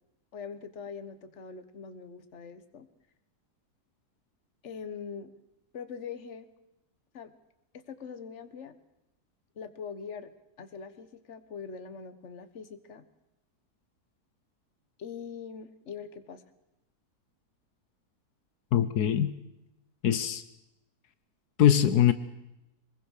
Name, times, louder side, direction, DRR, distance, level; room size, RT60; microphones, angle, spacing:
voice 1, 0.3-2.9 4.6-5.3 5.7-6.5 7.1-7.3 7.7-8.7 9.5-10.3 10.6-13.1 15.0-16.4, left 6 dB, 50° left, 11 dB, 1.6 m, -42 dB
voice 2, 18.7-19.3 20.0-20.4 21.6-22.1, left 10 dB, 85° left, 13 dB, 1.5 m, -22 dB
23.5 x 21.0 x 6.5 m, 0.91 s
omnidirectional pair, 1.6 m